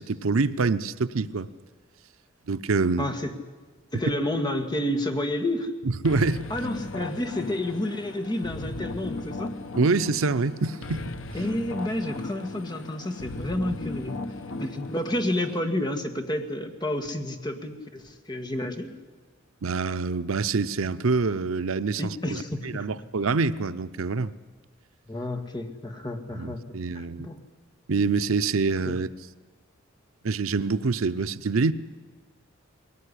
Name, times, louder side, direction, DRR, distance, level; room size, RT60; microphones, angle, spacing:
voice 1, 0.0-1.5 2.5-3.1 5.8-6.4 9.8-11.0 19.6-24.3 26.3-27.3 27.9-29.1 30.2-31.7, right 4 dB, 85° right, 0.7 m, -26 dB
voice 2, 3.0-3.3 3.9-5.7 6.5-9.5 11.3-14.2 14.6-19.0 22.0-22.9 25.1-26.6 26.9-27.4 28.8-28.9, left 1 dB, 20° left, 1.7 m, -30 dB
sound 1, 6.0-15.6, left 2 dB, 70° left, 1.1 m, -37 dB
20.5 x 18.0 x 10.0 m
head